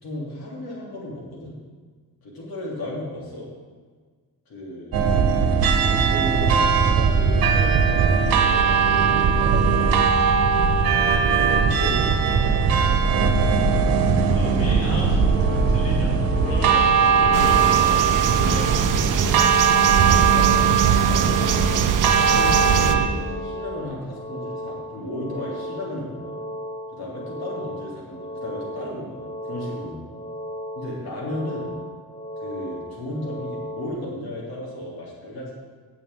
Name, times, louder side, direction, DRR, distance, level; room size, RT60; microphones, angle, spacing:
voice 1, 0.0-1.6 2.2-3.5 4.5-4.9 5.8-10.0 11.3-12.5 14.2-14.5 19.9-20.7 21.0-21.9 22.2-26.3 26.9-30.2 30.7-31.7 32.4-35.5, left 1 dB, 85° left, -5 dB, 3.3 m, -34 dB
sound 1, 4.9-23.1, right 6 dB, 75° right, 1.2 m, -19 dB
voice 2, 14.3-19.1, left 1 dB, 40° left, -4 dB, 2.5 m, -35 dB
sound 2, 14.7-33.9, equal, 20° left, 1.0 m, -36 dB
sound 3, 17.3-23.0, right 8 dB, 60° right, 0.7 m, -24 dB
17.0 x 7.1 x 3.8 m, 1.5 s
wide cardioid pair, 160°, 35 cm